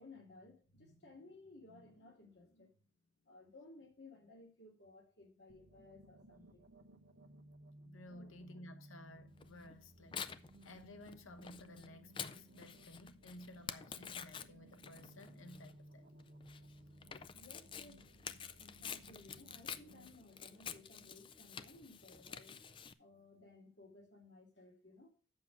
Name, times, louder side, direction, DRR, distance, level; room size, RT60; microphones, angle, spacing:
voice 1, 0.0-2.8 3.2-6.7 8.1-8.3 17.3-18.1 18.6-22.6 23.0-25.1, left 2 dB, 60° left, 2.3 m, -59 dB
sound 1, 5.5-20.2, right 1 dB, 70° right, 1.1 m, -60 dB
voice 2, 7.8-16.1, left 1 dB, 90° left, 1.0 m, -55 dB
Tearing, 9.4-22.9, left 7 dB, 25° left, 0.3 m, -49 dB
7.7 x 6.0 x 6.0 m
head